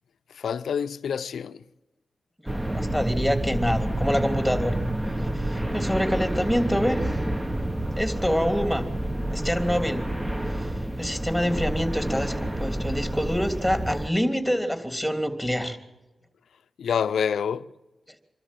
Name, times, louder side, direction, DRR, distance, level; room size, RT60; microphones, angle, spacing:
voice 1, 0.3-1.6 16.8-17.7, left 7 dB, 85° left, 0.6 m, -27 dB
voice 2, 2.4-4.8 5.2-7.0 7.9-8.9 9.3-10.0 10.5-15.8, equal, ahead, 3.1 m, -26 dB
sound 1, 2.5-14.1, right 1 dB, 15° right, 1.4 m, -29 dB
26.0 x 13.0 x 9.1 m
cardioid pair, 60°, 0 cm